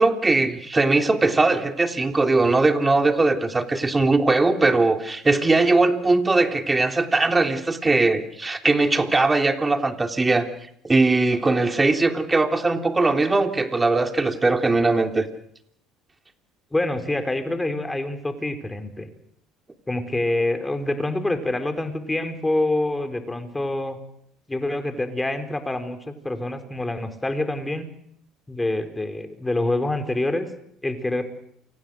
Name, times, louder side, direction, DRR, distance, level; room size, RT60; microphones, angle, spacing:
voice 1, 0.0-10.5 10.8-15.3, right 3 dB, 20° right, 5 dB, 3.4 m, -20 dB
voice 2, 16.7-19.1 19.9-24.0 24.5-27.9 28.5-30.5 30.8-31.2, left 2 dB, 10° left, 7 dB, 4.7 m, -26 dB
29.0 x 25.5 x 6.6 m, 0.71 s
hypercardioid pair, 65°, 0 cm